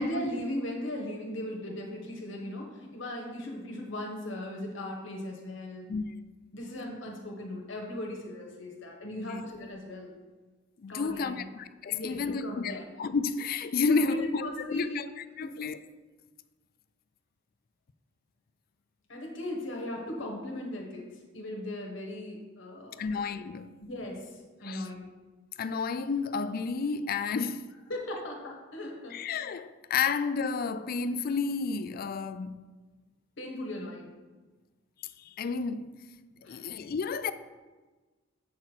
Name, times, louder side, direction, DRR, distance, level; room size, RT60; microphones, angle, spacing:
voice 1, 0.0-5.9 6.5-10.1 10.9-11.4 11.9-13.0 13.9-15.0 15.4-15.7 19.1-23.1 23.8-25.1 27.9-29.2 33.4-34.1 36.4-36.7, left 1 dB, 70° left, 1.3 m, -38 dB
voice 2, 10.8-15.8 23.0-23.7 24.6-24.9 25.6-27.7 29.1-32.6 35.2-36.0 36.5-37.3, left 5 dB, 50° left, 0.4 m, -31 dB
7.4 x 5.8 x 4.4 m
head